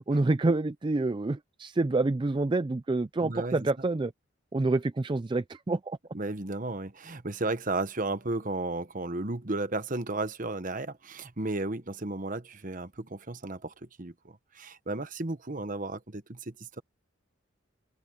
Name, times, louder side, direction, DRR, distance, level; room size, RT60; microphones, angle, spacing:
voice 1, 0.0-4.1 4.5-6.0, right 2 dB, 25° right, 0.4 m, -27 dB
voice 2, 3.2-3.6 6.1-16.8, right 2 dB, 40° right, 1.2 m, -34 dB
head